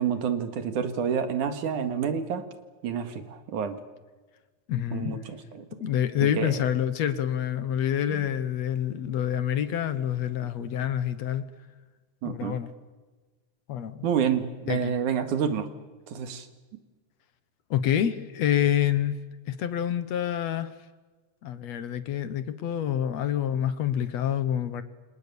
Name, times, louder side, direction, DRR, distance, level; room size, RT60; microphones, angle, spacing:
voice 1, 0.0-2.4 2.8-3.8 4.9-5.7 6.2-6.6 8.1-8.3 12.2-12.6 14.0-15.7 16.1-16.5, right 7 dB, 80° right, 9 dB, 3.4 m, -29 dB
voice 2, 4.7-5.2 5.8-11.5 12.2-12.7 13.7-14.0 14.7-14.9 17.7-19.1 19.5-20.7 21.4-24.8, left 10 dB, 65° left, 12 dB, 2.3 m, -27 dB
28.5 x 27.5 x 7.1 m, 1.3 s
omnidirectional pair, 3.5 m